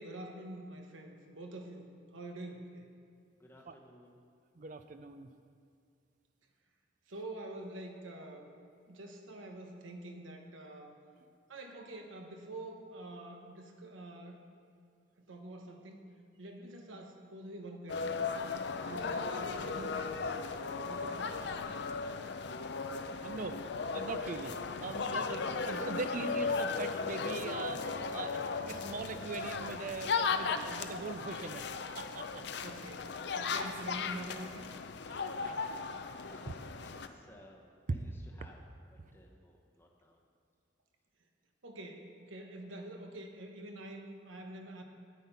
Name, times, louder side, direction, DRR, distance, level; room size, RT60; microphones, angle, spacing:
voice 1, 0.0-2.9 7.1-8.5 8.9-11.0 11.5-14.4 15.3-16.0 16.4-18.2 18.8-20.3 20.9-21.4 32.6-33.1 33.4-34.7 41.6-44.8, right 1 dB, 85° right, 3 dB, 1.2 m, -46 dB
voice 2, 3.4-4.2 36.3-38.6 38.9-40.2, left 1 dB, 10° left, -2 dB, 0.8 m, -59 dB
voice 3, 4.6-5.3 23.2-23.6 23.9-24.5 24.8-31.6 31.9-32.4 35.1-35.6, right 4 dB, 40° right, 9 dB, 0.4 m, -41 dB
sound 1, 17.9-37.1, left 4 dB, 60° left, 0.5 m, -36 dB
9.7 x 9.0 x 5.6 m, 2.3 s
head